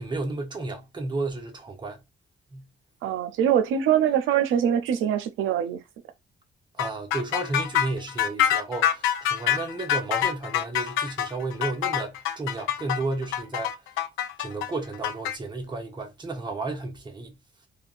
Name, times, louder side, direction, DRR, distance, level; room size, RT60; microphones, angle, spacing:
voice 1, 0.0-2.0 2.5-2.7 6.8-13.7 14.4-17.4, right 2 dB, 20° right, 1.0 m, -32 dB
voice 2, 3.0-5.8, right 9 dB, 85° right, 0.6 m, -23 dB
sound 1, 6.8-15.3, left 10 dB, 85° left, 0.5 m, -26 dB
3.4 x 2.3 x 2.4 m
cardioid pair, 90°, 20 cm